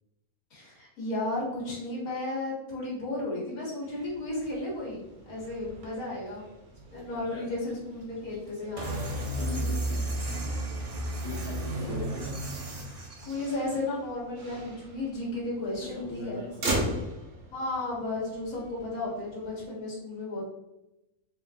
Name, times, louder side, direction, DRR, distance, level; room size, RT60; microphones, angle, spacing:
voice 1, 0.5-6.4 6.9-9.0 11.8-12.0 13.3-16.8 17.5-20.4, left 2 dB, 70° left, -6 dB, 2.0 m, -34 dB
Motor vehicle (road), 3.8-19.7, right 1 dB, 90° right, 1.5 m, -41 dB
voice 2, 7.1-7.5 9.3-10.2 11.2-12.3 15.8-17.1, left 2 dB, 90° left, -9 dB, 1.7 m, -40 dB
sound 1, 8.8-13.6, right 1 dB, 40° right, 0.5 m, -33 dB
4.3 x 2.3 x 3.6 m, 0.92 s
omnidirectional pair, 1.5 m